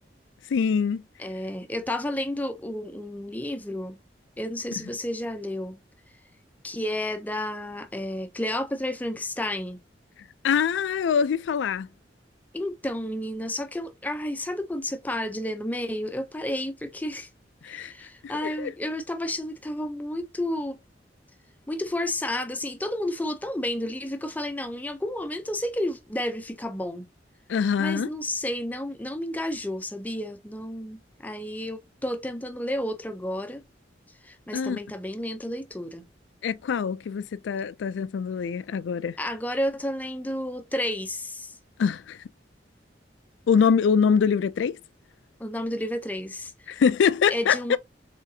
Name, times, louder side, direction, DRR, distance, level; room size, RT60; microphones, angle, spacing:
voice 1, 0.5-1.0 10.4-11.9 17.6-17.9 18.2-18.7 27.5-28.1 34.5-34.8 36.4-39.2 41.8-42.2 43.5-44.8 46.7-47.6, left 6 dB, 85° left, 0.3 m, -24 dB
voice 2, 1.2-4.0 4.4-5.8 6.6-9.8 12.5-17.3 17.6-20.8 21.7-27.1 27.8-33.6 34.2-36.0 39.2-41.5 45.4-46.5 47.3-47.8, left 1 dB, 10° left, 0.4 m, -31 dB
4.0 x 3.6 x 2.7 m
head